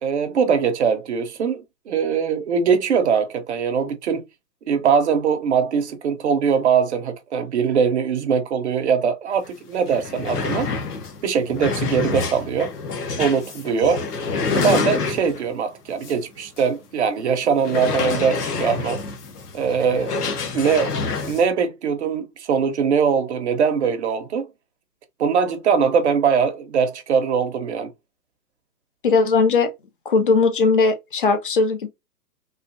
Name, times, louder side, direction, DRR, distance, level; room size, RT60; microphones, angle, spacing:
voice 1, 0.0-4.2 4.7-10.7 11.2-12.7 13.2-14.0 14.5-19.0 19.5-21.0 21.2-24.5 25.2-27.9, right 6 dB, 45° right, 0.6 m, -21 dB
sound 1, 9.4-9.5 9.8-15.5 16.0-16.2 16.6-16.7 17.6-21.4, left 4 dB, 65° left, 1.1 m, -27 dB
voice 2, 29.0-29.7 30.1-31.9, left 4 dB, 35° left, 0.4 m, -18 dB
3.1 x 2.6 x 2.5 m
hypercardioid pair, 145°, 50 cm